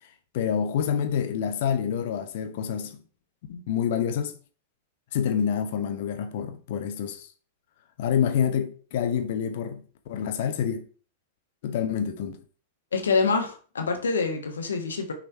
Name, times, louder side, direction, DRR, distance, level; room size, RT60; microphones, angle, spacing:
voice 1, 0.3-3.0 3.5-4.3 5.1-7.3 8.0-9.8 10.1-10.8 11.6-12.4, left 8 dB, 50° left, 1.1 m, -27 dB
voice 2, 12.9-15.1, left 4 dB, 70° left, 1.4 m, -26 dB
6.2 x 4.0 x 4.6 m
figure-of-eight pair, 95°, 0 cm